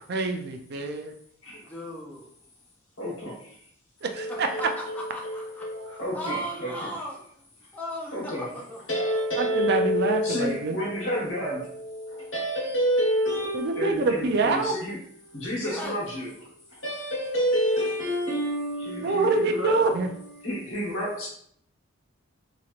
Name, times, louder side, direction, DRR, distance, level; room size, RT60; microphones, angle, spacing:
voice 1, 0.1-1.1 4.0-4.5 9.4-10.8 13.5-14.7 19.0-20.1, right 3 dB, 50° right, 5 dB, 0.4 m, -25 dB
voice 2, 1.6-2.3 4.3-4.6 4.9-5.7 6.1-7.2 7.7-8.8 10.3-10.4 15.4-16.0, equal, 10° left, -3 dB, 0.4 m, -37 dB
voice 3, 3.0-3.5 4.1-6.9 8.1-8.5 8.9-15.0 15.2-19.8 20.2-21.3, equal, 65° left, -3 dB, 1.1 m, -29 dB
3.0 x 2.8 x 2.4 m, 0.67 s
head